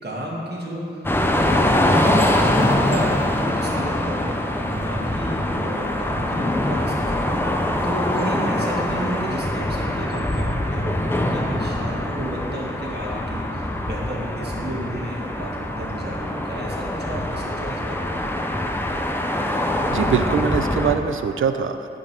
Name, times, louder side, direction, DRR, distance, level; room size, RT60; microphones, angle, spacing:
voice 1, 0.0-18.2, equal, 50° right, -4 dB, 1.6 m, -32 dB
sound 1, 1.0-21.0, left 1 dB, 10° left, 0.6 m, -23 dB
voice 2, 19.9-22.0, right 6 dB, 75° right, 8 dB, 0.4 m, -23 dB
11.5 x 5.1 x 3.4 m, 2.8 s
wide cardioid pair, 70°, 21 cm